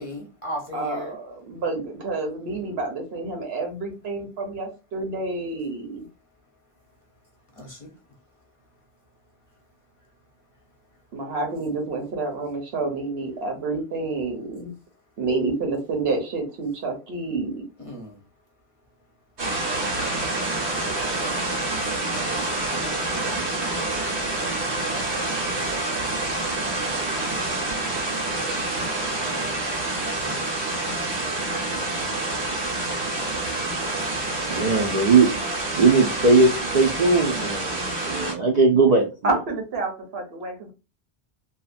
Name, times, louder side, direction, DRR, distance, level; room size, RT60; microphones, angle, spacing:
voice 1, 0.0-1.2 7.5-8.5 9.5-9.6 10.0-10.1 10.9-11.0 17.8-18.3, equal, 35° left, 0.7 m, -37 dB
voice 2, 0.7-6.1 11.1-14.7 15.2-17.6 39.2-40.7, right 3 dB, 70° right, 1.0 m, -29 dB
sound 1, 19.4-38.3, right 2 dB, 90° right, 1.3 m, -27 dB
voice 3, 34.5-35.3 35.7-39.3, right 3 dB, 55° right, 0.5 m, -19 dB
2.7 x 2.4 x 2.4 m
omnidirectional pair, 1.1 m